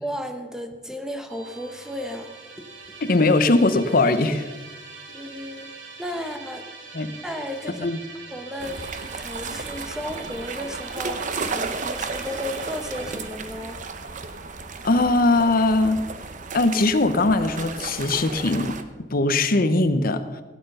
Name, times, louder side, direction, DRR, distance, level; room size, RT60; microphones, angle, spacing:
voice 1, 0.0-2.3 5.1-5.7 6.0-6.6 7.2-7.9 8.3-13.8, equal, 5° right, 6 dB, 1.0 m, -34 dB
Musical instrument, 1.3-16.5, right 4 dB, 75° right, 2.3 m, -43 dB
voice 2, 3.0-4.5 6.9-7.1 7.8-8.0 14.8-16.0 16.5-18.8 19.1-20.4, left 2 dB, 50° left, 9 dB, 0.9 m, -20 dB
sound 1, 8.6-18.8, right 4 dB, 45° right, 0.8 m, -33 dB
16.5 x 9.2 x 5.5 m, 1.3 s
head